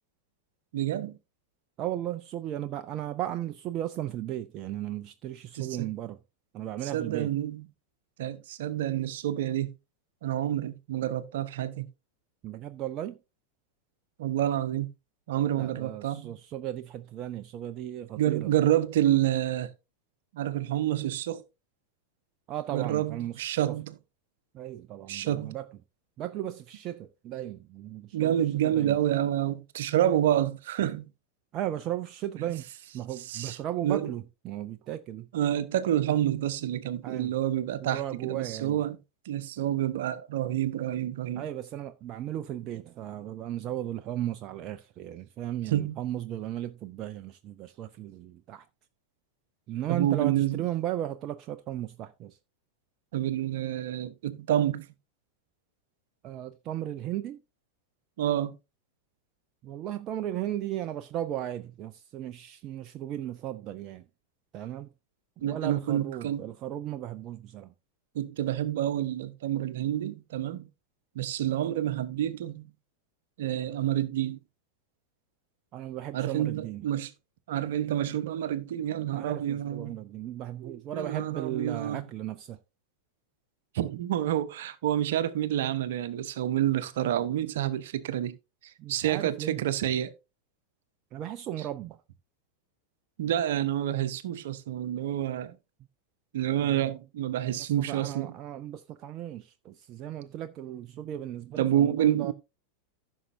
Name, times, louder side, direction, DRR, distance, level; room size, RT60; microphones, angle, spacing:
voice 1, 0.7-1.2 5.5-5.9 6.8-7.7 8.2-9.7 10.2-11.9 14.2-14.9 15.3-16.4 18.2-19.7 20.3-21.4 22.7-23.9 25.1-25.6 28.1-31.1 32.4-32.5 33.3-34.1 35.3-39.0 39.2-41.4 45.7-46.0 49.9-50.6 53.1-54.9 58.2-58.5 65.4-66.4 68.1-70.7 71.1-72.7 73.4-74.4 76.1-77.1 77.5-80.0 80.9-82.1 83.7-88.4 88.6-90.1 93.2-95.6 96.3-98.3 101.6-102.3, right 12 dB, 55° right, 1.0 m, -28 dB
voice 2, 1.8-6.2 6.5-7.3 12.4-13.2 15.6-18.5 22.5-23.4 23.7-23.8 24.5-25.7 26.2-28.3 28.6-29.0 31.5-32.6 32.9-35.3 37.0-37.3 37.8-38.8 41.4-48.7 49.7-52.4 56.2-57.4 59.6-64.0 64.5-64.9 65.4-67.7 75.7-76.9 79.1-82.6 88.8-89.6 91.1-92.0 96.6-96.9 97.6-102.3, right 12 dB, 35° right, 0.6 m, -36 dB
15.0 x 6.5 x 2.6 m
figure-of-eight pair, 90°, 0 cm